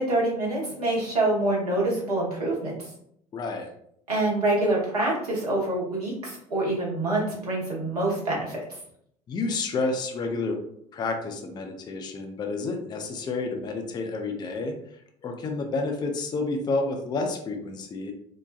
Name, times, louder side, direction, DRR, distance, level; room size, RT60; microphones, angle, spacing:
voice 1, 0.0-2.7 4.1-8.6, right 2 dB, 80° right, -5 dB, 0.9 m, -26 dB
voice 2, 3.3-3.7 9.3-10.5 10.9-14.8 15.2-18.1, left 3 dB, 20° left, 4 dB, 0.4 m, -30 dB
2.8 x 2.2 x 2.4 m, 0.70 s
figure-of-eight pair, 65°, 19 cm